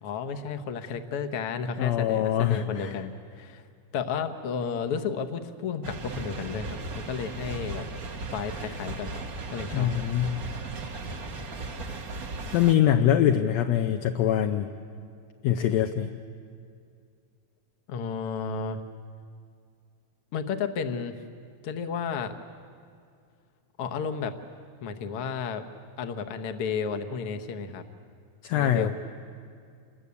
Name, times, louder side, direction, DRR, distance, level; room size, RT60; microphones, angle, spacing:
voice 1, 0.0-3.6 3.9-6.8 7.1-7.9 8.3-9.2 9.5-9.9 17.9-18.8 20.3-21.1 21.6-22.3 23.8-24.3 24.8-25.6 26.0-27.9 28.5-28.9, left 6 dB, 55° left, 7 dB, 1.8 m, -32 dB
voice 2, 1.8-2.9 9.7-10.4 12.5-14.7 15.4-16.1 28.4-28.9, left 10 dB, 70° left, 6 dB, 1.8 m, -23 dB
sound 1, 5.8-12.7, right 3 dB, 55° right, 1.0 m, -36 dB
28.5 x 21.0 x 8.4 m, 2.3 s
omnidirectional pair, 3.5 m